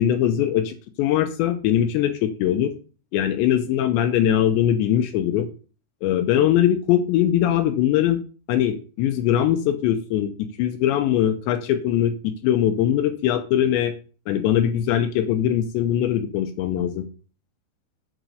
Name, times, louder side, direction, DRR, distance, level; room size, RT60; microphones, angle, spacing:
voice 1, 0.0-2.7 3.1-5.5 6.0-8.2 8.5-10.3 10.6-13.9 14.3-17.1, left 10 dB, 80° left, 8 dB, 2.9 m, -21 dB
9.1 x 5.3 x 6.5 m, 0.37 s
omnidirectional pair, 5.3 m